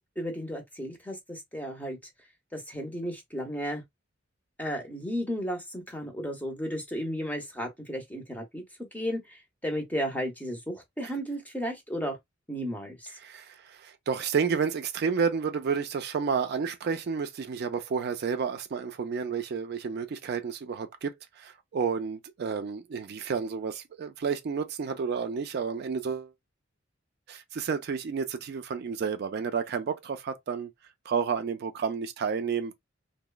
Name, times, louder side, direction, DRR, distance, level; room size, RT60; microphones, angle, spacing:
voice 1, 0.2-2.0 2.5-3.8 4.6-8.6 8.9-12.2 12.5-13.1, equal, 10° left, 0.6 m, -34 dB
voice 2, 13.2-26.3 27.3-30.7 31.1-32.7, right 6 dB, 50° right, 0.4 m, -31 dB
2.9 x 2.0 x 2.2 m
head